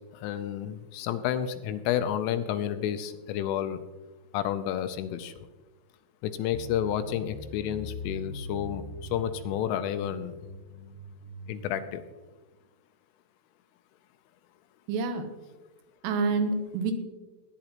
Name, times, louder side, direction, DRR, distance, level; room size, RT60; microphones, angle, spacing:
voice 1, 0.1-3.8 4.3-5.3 6.2-10.3 11.5-12.0, left 10 dB, 85° left, 10 dB, 3.1 m, -30 dB
sound 1, 6.5-11.5, left 1 dB, 60° left, 2.5 m, -42 dB
voice 2, 14.9-15.3 16.0-16.9, right 4 dB, 80° right, 7 dB, 3.4 m, -27 dB
18.5 x 9.7 x 3.0 m, 1.2 s
omnidirectional pair, 5.9 m